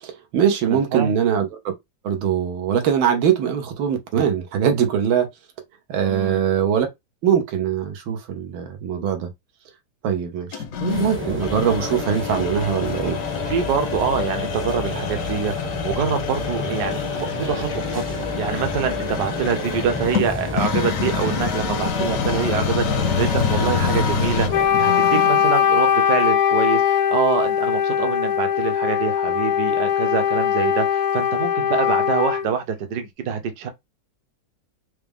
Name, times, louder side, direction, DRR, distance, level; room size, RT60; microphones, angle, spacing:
voice 1, 0.0-1.5 2.0-5.3 5.9-6.9 7.2-9.3 10.0-13.2, right 8 dB, 90° right, 1.7 m, -22 dB
voice 2, 0.7-1.1 6.1-6.4 13.5-33.7, right 7 dB, 65° right, 1.2 m, -25 dB
sound 1, 10.5-25.5, left 7 dB, 65° left, 0.8 m, -27 dB
sound 2, 10.9-24.7, left 1 dB, 15° right, 0.4 m, -30 dB
Wind instrument woodwind instrument, 24.5-32.5, left 9 dB, 85° left, 1.4 m, -20 dB
4.8 x 2.1 x 3.4 m
omnidirectional pair, 2.1 m